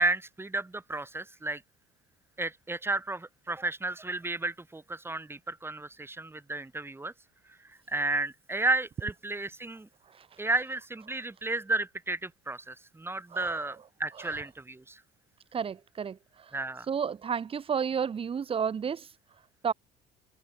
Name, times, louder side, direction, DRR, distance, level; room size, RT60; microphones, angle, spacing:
voice 1, 0.0-1.6 2.4-7.1 7.7-9.9 10.4-15.0 16.5-16.9, right 2 dB, 15° right, 4.7 m, -32 dB
voice 2, 13.3-13.6 15.5-16.2 16.9-19.1 19.6-19.7, right 7 dB, 30° right, 1.1 m, -31 dB
cardioid pair, 105°, 18 cm